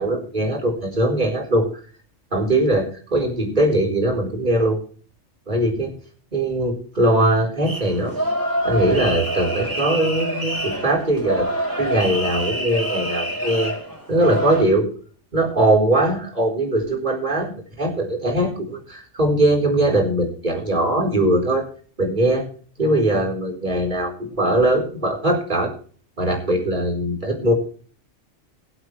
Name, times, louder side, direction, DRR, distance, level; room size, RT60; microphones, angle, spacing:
voice 1, 0.0-1.7 2.3-4.8 5.5-5.9 6.3-8.1 8.6-13.7 14.1-14.9 15.3-21.7 22.0-22.5 22.8-25.7 26.2-27.5, right 1 dB, 40° right, -1 dB, 4.4 m, -21 dB
sound 1, 7.6-14.6, right 1 dB, 15° right, 3.8 m, -26 dB
23.0 x 8.0 x 3.3 m, 0.42 s
omnidirectional pair, 1.2 m